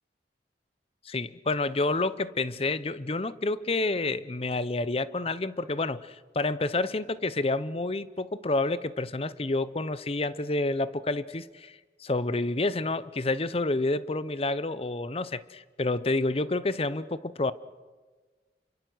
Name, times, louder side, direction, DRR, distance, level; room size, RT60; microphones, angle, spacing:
voice 1, 1.0-17.5, left 2 dB, 35° left, 16 dB, 0.7 m, -29 dB
28.5 x 24.5 x 6.3 m, 1.4 s
head